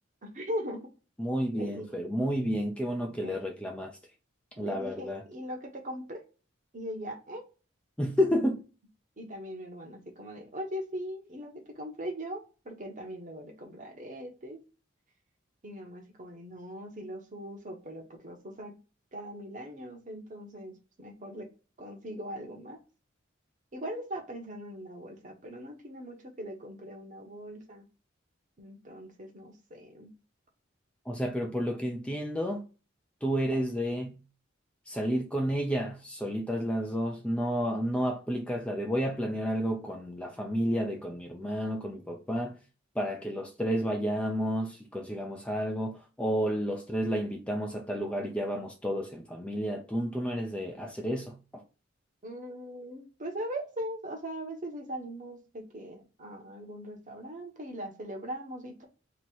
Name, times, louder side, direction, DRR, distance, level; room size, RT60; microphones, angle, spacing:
voice 1, 0.2-0.9 1.5-2.0 3.2-3.4 4.6-6.2 6.7-7.5 9.2-14.6 15.6-18.7 19.1-21.5 21.8-22.8 23.7-27.9 28.6-30.1 52.2-58.8, equal, 40° right, 1.0 m, -40 dB
voice 2, 1.2-3.9 4.6-5.2 8.0-8.6 31.1-32.6 33.2-34.2 34.9-42.5 43.0-51.6, equal, 5° left, 0.5 m, -31 dB
3.0 x 2.9 x 4.4 m
head